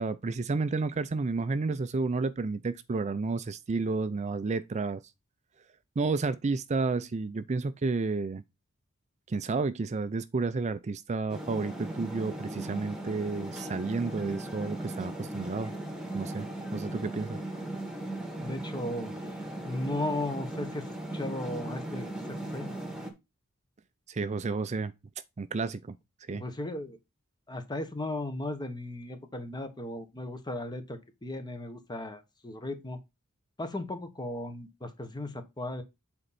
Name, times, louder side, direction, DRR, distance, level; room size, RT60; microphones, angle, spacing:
voice 1, 0.0-5.0 6.0-8.4 9.3-15.7 16.1-16.5 16.7-17.4 24.1-24.9 25.4-26.0 26.3-26.4, right 3 dB, 30° right, 0.4 m, -31 dB
sound 1, 11.3-23.1, right 1 dB, 5° right, 1.9 m, -38 dB
voice 2, 18.4-19.1 19.6-22.7 26.3-27.0 27.5-33.0 33.6-35.8, left 1 dB, 20° left, 1.2 m, -36 dB
8.0 x 4.4 x 4.1 m
head